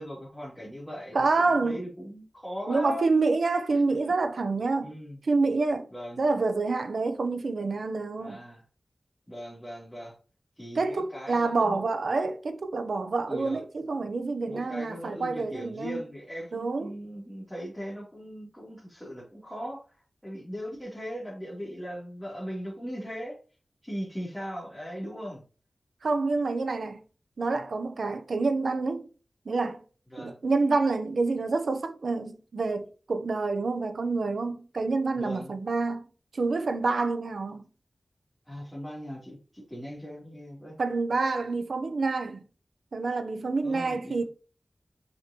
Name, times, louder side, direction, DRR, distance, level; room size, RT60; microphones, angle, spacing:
voice 1, 0.0-3.2 4.8-5.2 5.9-6.2 8.2-8.6 9.3-10.2 10.6-11.8 13.3-13.6 14.5-23.4 23.8-25.4 30.1-30.4 35.1-35.5 38.5-40.8 43.6-44.2, equal, 5° left, 3.3 m, -39 dB
voice 2, 1.1-1.8 2.7-4.9 5.2-5.9 6.2-8.4 10.7-16.0 16.5-16.9 26.0-27.0 27.4-29.1 29.4-29.8 30.2-36.1 36.3-37.6 40.8-42.4 42.9-44.2, right 3 dB, 80° right, 0.9 m, -27 dB
6.3 x 6.1 x 3.1 m
wide cardioid pair, 95°, 0 cm